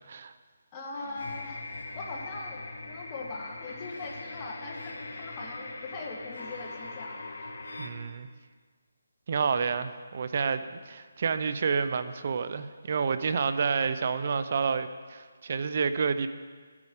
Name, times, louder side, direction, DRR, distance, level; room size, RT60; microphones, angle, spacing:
voice 1, 0.7-1.6 1.9-7.2, left 3 dB, 20° left, -1 dB, 1.4 m, -40 dB
sound 1, 0.9-7.9, left 2 dB, 70° left, 1.7 m, -41 dB
voice 2, 7.8-8.3 9.3-16.3, right 5 dB, 45° right, 11 dB, 0.5 m, -29 dB
13.5 x 9.4 x 3.7 m, 1.5 s
hypercardioid pair, 160°, 0 cm